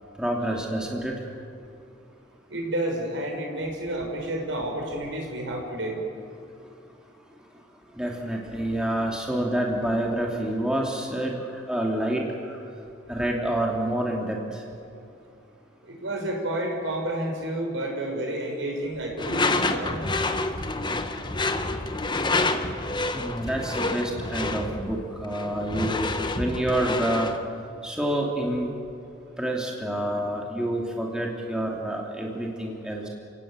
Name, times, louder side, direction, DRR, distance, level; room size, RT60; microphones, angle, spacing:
voice 1, 0.2-1.2 8.0-12.6 13.1-14.6 23.1-26.1 26.3-27.3 27.8-28.7 29.4-33.1, right 1 dB, 5° right, -1 dB, 2.6 m, -28 dB
voice 2, 2.5-6.0 15.8-20.0, right 1 dB, 75° right, 1 dB, 5.7 m, -30 dB
Door / Screech, 19.2-27.4, left 2 dB, 25° left, 1.1 m, -28 dB
29.5 x 17.0 x 8.9 m, 2.5 s
head